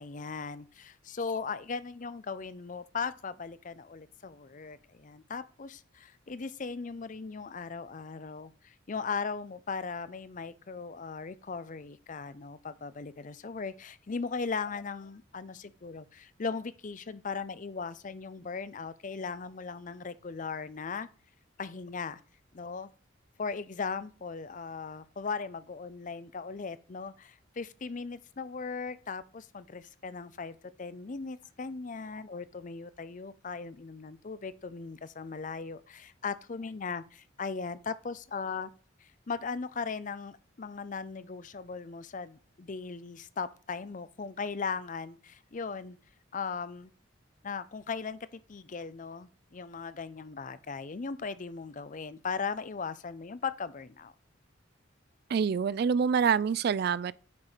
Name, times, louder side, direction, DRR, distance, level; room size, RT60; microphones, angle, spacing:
voice 1, 0.0-21.1 21.6-22.2 22.5-22.9 23.4-38.7 39.0-46.0 46.3-46.9 47.4-54.1, left 5 dB, 40° left, 0.5 m, -38 dB
voice 2, 55.3-57.1, right 6 dB, 50° right, 0.3 m, -26 dB
9.5 x 4.6 x 5.0 m
head